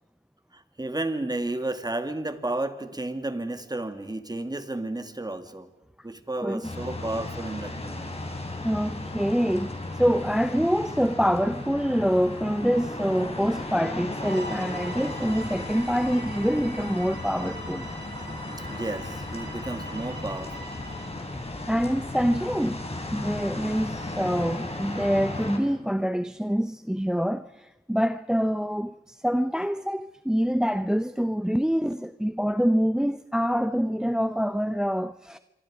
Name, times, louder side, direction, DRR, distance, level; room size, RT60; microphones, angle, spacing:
voice 1, 0.5-5.7 6.0-8.2 18.7-20.7, right 2 dB, 20° right, 2.1 m, -32 dB
voice 2, 6.4-6.7 8.6-17.9 21.2-21.3 21.7-35.4, equal, 5° right, 0.6 m, -26 dB
sound 1, 6.6-25.6, left 2 dB, 35° left, 4.4 m, -35 dB
Bowed string instrument, 14.2-21.2, right 1 dB, 75° right, 5.1 m, -44 dB
27.0 x 24.5 x 5.0 m
cardioid pair, 60°, 18 cm